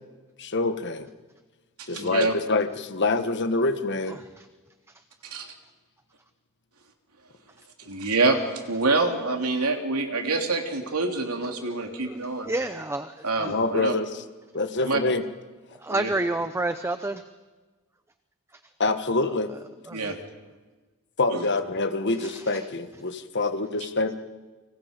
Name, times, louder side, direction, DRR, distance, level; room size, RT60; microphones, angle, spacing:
voice 1, 0.4-1.1 1.9-4.2 13.4-14.2 14.5-15.2 18.8-19.5 21.2-24.1, left 3 dB, 55° left, 8 dB, 1.5 m, -26 dB
voice 2, 1.9-2.3 5.2-5.5 7.9-8.4 8.7-12.5 13.2-13.9 14.8-15.0 15.9-16.1 19.9-20.2 21.3-21.4, right 3 dB, 90° right, 3 dB, 3.1 m, -26 dB
voice 3, 11.7-13.5 15.8-17.2 19.9-20.1 22.2-22.4, right 2 dB, 10° right, 10 dB, 0.7 m, -30 dB
30.0 x 25.0 x 5.2 m, 1.3 s
head